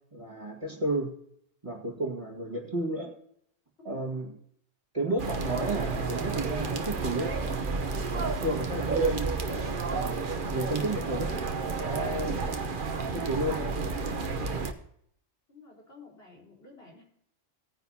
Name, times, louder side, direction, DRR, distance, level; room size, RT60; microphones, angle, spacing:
voice 1, 0.1-1.1 1.6-3.1 3.9-4.3 4.9-7.3 8.1-11.3 11.8-12.4 13.1-13.6, right 1 dB, 30° right, 0 dB, 2.0 m, -32 dB
sound 1, 5.2-14.7, right 4 dB, 50° right, 1.1 m, -31 dB
voice 2, 11.8-12.1 15.5-17.0, left 3 dB, 60° left, -3 dB, 4.9 m, -51 dB
17.5 x 9.7 x 2.8 m, 0.68 s
omnidirectional pair, 1.1 m